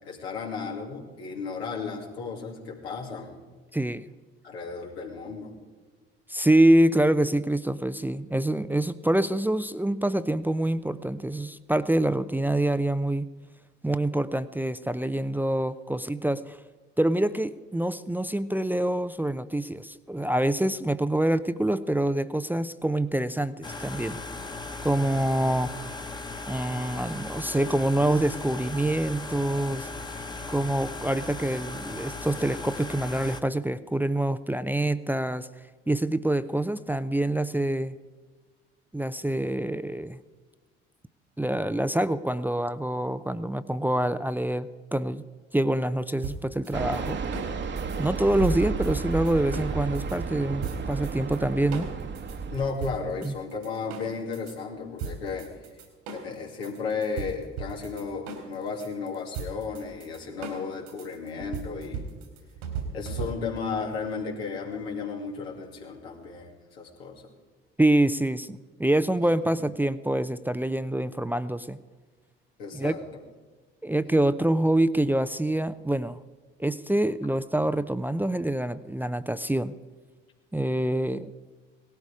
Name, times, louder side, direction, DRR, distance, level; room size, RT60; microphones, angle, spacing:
voice 1, 0.0-3.4 4.4-5.6 52.5-55.8 56.1-62.0 62.9-67.2 72.6-73.0, left 4 dB, 90° left, -1 dB, 2.6 m, -34 dB
voice 2, 3.7-4.1 6.3-13.3 13.8-16.6 17.0-24.2 24.8-25.8 26.5-29.9 30.5-35.5 35.9-37.9 38.9-40.2 41.4-45.2 45.5-47.2 48.0-51.9 53.2-53.3 67.8-71.8 72.7-72.9 73.8-76.2 76.6-79.7 80.5-81.3, right 1 dB, 5° right, 12 dB, 0.6 m, -26 dB
sound 1, 23.6-33.4, left 3 dB, 15° left, 1.2 m, -37 dB
sound 2, 46.2-50.2 50.6-51.4 51.7-54.6 55.0-63.7, right 5 dB, 80° right, 3.0 m, -38 dB
Fixed-wing aircraft airplane, 46.7-52.7, right 5 dB, 40° right, 1.2 m, -32 dB
17.5 x 13.0 x 4.9 m, 1.4 s
hypercardioid pair, 60°, 30 cm